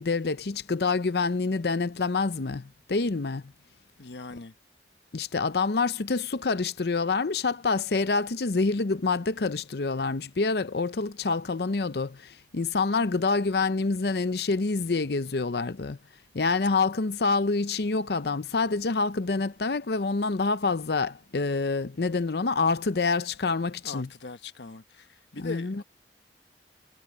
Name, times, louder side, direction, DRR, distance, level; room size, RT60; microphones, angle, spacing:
voice 1, 0.0-3.4 5.1-16.0 16.3-24.1 25.4-25.8, left 4 dB, 65° left, 0.7 m, -27 dB
voice 2, 4.0-4.5 23.8-25.8, left 3 dB, 80° left, 1.1 m, -41 dB
head